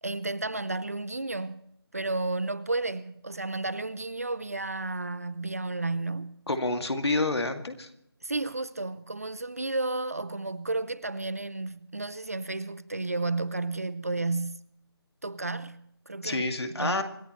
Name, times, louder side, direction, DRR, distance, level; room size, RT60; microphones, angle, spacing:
voice 1, 0.0-1.6 1.9-6.4 8.2-14.6 15.2-16.4 16.7-17.0, right 2 dB, 35° right, 0.5 m, -32 dB
voice 2, 6.5-7.9 16.2-17.0, left 2 dB, 80° left, 2.3 m, -28 dB
26.5 x 15.0 x 3.1 m
figure-of-eight pair, 175°, 13 cm